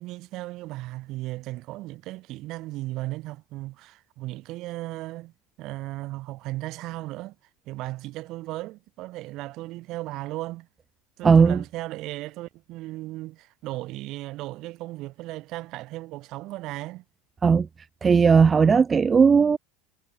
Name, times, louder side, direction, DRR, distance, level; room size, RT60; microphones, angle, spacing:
voice 1, 0.0-5.3 5.6-7.4 7.7-10.7 11.2-17.0, right 18 dB, 50° right, 1.9 m, -36 dB
voice 2, 11.2-11.6 17.4-17.7 18.0-19.6, right 5 dB, 25° right, 0.6 m, -17 dB
hypercardioid pair, 80°, 0 cm